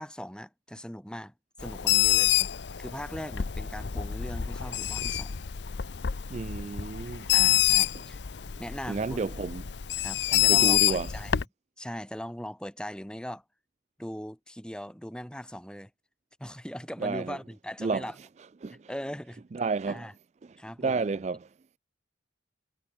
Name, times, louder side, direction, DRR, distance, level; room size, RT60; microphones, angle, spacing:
voice 1, 0.0-1.3 1.6-2.3 2.8-5.4 7.3-8.2 8.6-9.3 10.0-11.3 11.8-13.4 14.0-15.9 16.4-18.1 18.7-19.4 19.9-20.1 20.6-21.1, equal, 5° left, 2.6 m, -39 dB
Bird, 1.6-11.4, left 12 dB, 65° left, 0.6 m, -27 dB
voice 2, 6.3-7.3 8.9-9.6 10.3-11.1 17.0-17.4 17.8-18.1 18.6-18.9 19.5-20.1 20.4-21.5, right 4 dB, 35° right, 0.3 m, -31 dB
head